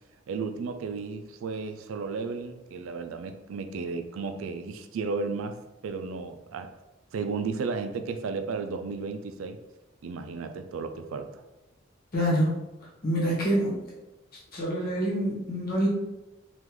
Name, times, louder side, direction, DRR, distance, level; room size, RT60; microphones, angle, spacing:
voice 1, 0.3-5.6 5.8-6.7 7.1-9.6 10.0-11.4, right 4 dB, 85° right, 8 dB, 0.4 m, -33 dB
voice 2, 12.1-12.5 13.0-13.8 14.5-15.9, equal, 50° left, -5 dB, 1.2 m, -26 dB
3.6 x 2.4 x 3.0 m, 0.96 s
head